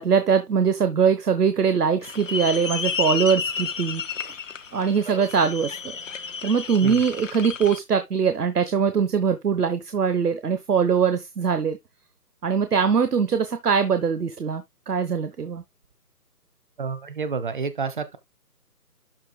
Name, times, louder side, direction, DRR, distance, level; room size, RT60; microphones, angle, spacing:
voice 1, 0.0-4.0 4.3-4.4 4.7-5.7 6.4-11.8 12.4-15.6, right 6 dB, 75° right, 1.1 m, -22 dB
sound 1, 2.0-7.8, left 6 dB, 55° left, 0.9 m, -31 dB
voice 2, 16.8-18.2, right 5 dB, 30° right, 0.9 m, -29 dB
12.0 x 4.7 x 2.2 m
figure-of-eight pair, 150°, 47 cm